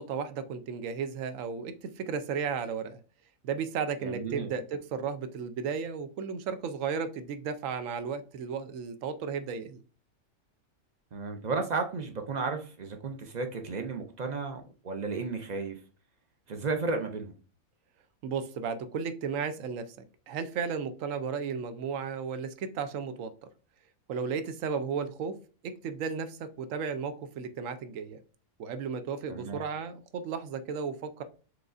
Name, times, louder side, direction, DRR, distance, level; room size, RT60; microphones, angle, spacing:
voice 1, 0.0-3.0 3.4-9.8 18.2-20.0 20.3-23.3 24.1-25.4 25.6-28.2 28.6-31.2, right 6 dB, 70° right, 1.0 m, -34 dB
voice 2, 4.0-4.5 11.1-15.8 16.5-17.3 29.3-29.7, right 4 dB, 50° right, 0.5 m, -33 dB
4.8 x 3.8 x 2.5 m
omnidirectional pair, 1.5 m